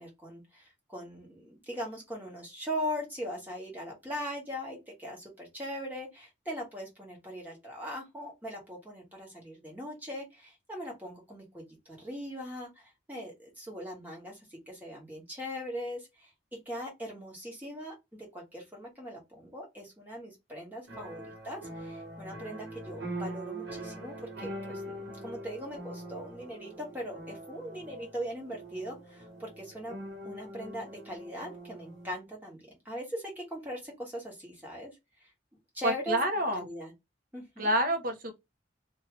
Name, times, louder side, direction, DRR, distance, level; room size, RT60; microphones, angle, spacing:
voice 1, 0.0-16.3 16.6-17.9 18.3-29.9 30.2-35.0 35.2-35.3 35.7-36.2 36.5-36.9 37.3-37.7, equal, 10° right, 1.2 m, -40 dB
sound 1, 20.9-32.1, right 1 dB, 70° right, 1.0 m, -43 dB
voice 2, 35.8-36.7 37.6-38.3, equal, 50° right, 0.7 m, -28 dB
2.7 x 2.3 x 2.9 m
head